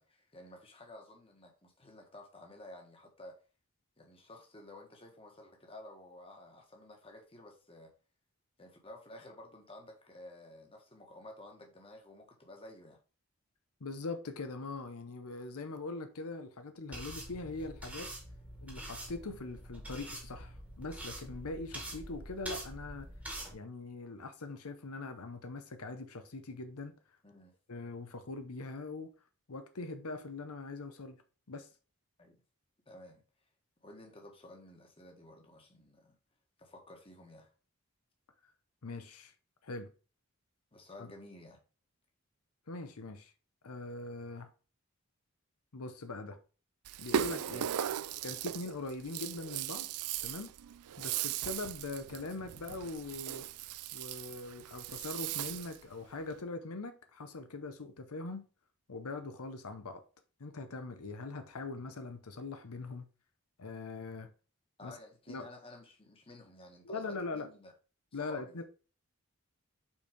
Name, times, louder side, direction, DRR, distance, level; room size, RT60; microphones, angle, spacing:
voice 1, 0.0-3.4 4.0-7.9 8.6-13.0 27.2-27.5 32.2-32.4 32.9-33.2 33.8-36.2 36.6-37.5 40.7-41.6 47.5-47.8 64.8-67.0 67.3-67.7 68.2-68.6, left 1 dB, 25° left, 1.4 m, -53 dB
voice 2, 13.8-18.1 18.6-23.1 23.5-26.9 27.7-29.1 29.5-31.2 31.5-31.7 38.8-39.3 39.6-39.9 41.0-41.1 42.7-43.3 43.6-44.5 45.7-46.4 47.0-47.7 48.2-49.9 50.2-50.5 51.0-53.5 53.9-58.5 58.9-60.0 60.4-63.1 63.6-64.3 64.8-65.0 65.3-65.4 66.8-67.5 68.1-68.6, left 3 dB, 85° left, 0.8 m, -42 dB
sound 1, 16.9-23.5, right 1 dB, 5° right, 1.5 m, -45 dB
Rattle (instrument), 46.8-55.8, right 10 dB, 90° right, 0.4 m, -38 dB
5.7 x 4.5 x 5.0 m
head